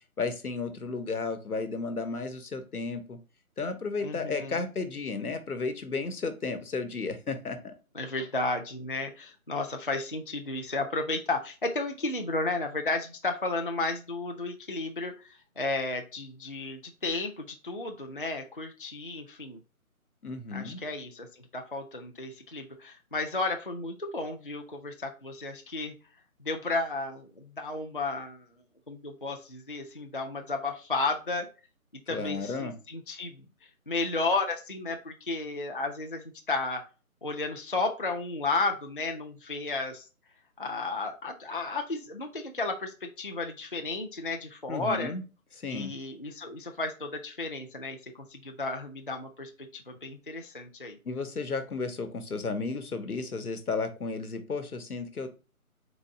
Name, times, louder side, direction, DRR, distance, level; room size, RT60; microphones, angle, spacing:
voice 1, 0.2-3.2 3.6-7.7 20.2-20.8 32.1-32.7 44.7-45.2 45.6-45.9 51.0-55.3, left 4 dB, 85° left, 8 dB, 1.1 m, -33 dB
voice 2, 4.0-4.6 7.9-19.6 20.5-25.9 26.4-28.5 28.9-31.5 32.1-33.4 33.9-36.8 37.2-40.1 40.6-45.1 45.7-51.0, left 3 dB, 40° left, 4 dB, 0.4 m, -33 dB
4.0 x 3.1 x 3.6 m, 0.33 s
figure-of-eight pair, 160°, 44 cm